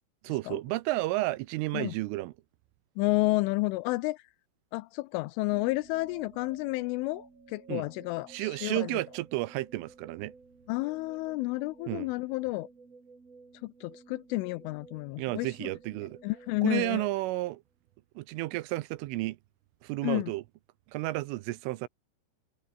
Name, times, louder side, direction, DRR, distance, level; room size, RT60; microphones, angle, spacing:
voice 1, 0.2-2.3 7.7-7.9 8.3-10.3 11.9-12.1 15.2-16.2 16.6-17.6 18.2-19.4 19.8-20.4 20.9-21.9, right 19 dB, 85° right, 3.2 m, -32 dB
voice 2, 3.0-4.2 4.7-9.0 10.7-12.7 13.6-15.7 16.2-17.1 20.0-20.3, left 22 dB, 80° left, 2.9 m, -31 dB
sound 1, 5.5-17.5, right 4 dB, 30° right, 5.8 m, -54 dB
omnidirectional pair, 5.9 m